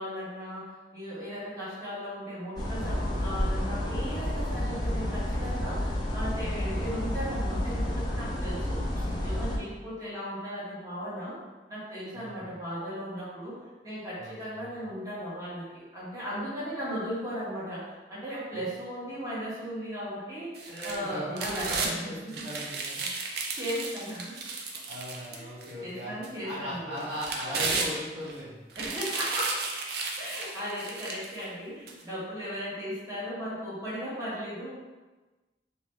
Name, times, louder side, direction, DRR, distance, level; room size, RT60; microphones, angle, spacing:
voice 1, 0.0-8.8 9.2-11.3 11.7-13.6 13.8-22.5 23.5-24.4 25.3-25.5 25.8-27.1 28.7-29.6 30.2-34.7, equal, 20° right, -11 dB, 1.4 m, -37 dB
sound 1, 2.6-9.6, left 1 dB, 25° left, 0.5 m, -30 dB
voice 2, 12.1-12.5 14.1-14.7 20.7-23.0 24.9-26.2 26.4-28.6, equal, 90° right, -9 dB, 1.5 m, -38 dB
sound 2, 20.5-21.9 22.3-25.7 26.2-26.3 27.0-28.3 28.7-31.4 31.9-32.0, right 4 dB, 60° right, 0.5 m, -33 dB
3.3 x 3.0 x 3.2 m, 1.2 s
head